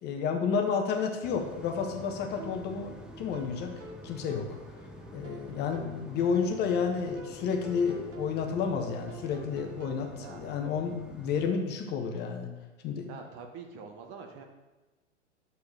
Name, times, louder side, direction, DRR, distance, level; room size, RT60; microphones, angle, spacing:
voice 1, 0.0-3.7 4.0-4.5 5.1-12.5 12.8-13.1, left 6 dB, 30° left, 4 dB, 1.1 m, -31 dB
sound 1, 1.2-11.5, equal, ahead, 0.5 m, -48 dB
sound 2, 2.4-10.0, right 2 dB, 75° right, 1.4 m, -48 dB
voice 2, 13.1-14.4, right 5 dB, 35° right, 4 dB, 1.0 m, -45 dB
9.4 x 6.7 x 3.3 m, 1.2 s
figure-of-eight pair, 100°, 36 cm